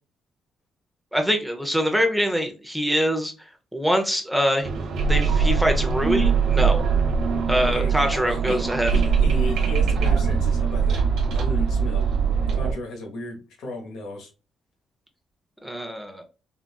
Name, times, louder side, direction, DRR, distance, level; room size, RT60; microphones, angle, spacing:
voice 1, 1.1-3.3 3.7-4.7 5.1-6.8 7.5-8.9 15.6-16.2, equal, ahead, 0.7 m, -24 dB
sound 1, 4.6-12.7, right 5 dB, 65° right, 0.8 m, -22 dB
voice 2, 7.6-11.0 11.3-12.1 12.5-14.3, left 1 dB, 80° left, 1.0 m, -34 dB
3.7 x 2.4 x 2.3 m
cardioid pair, 90°, 0 cm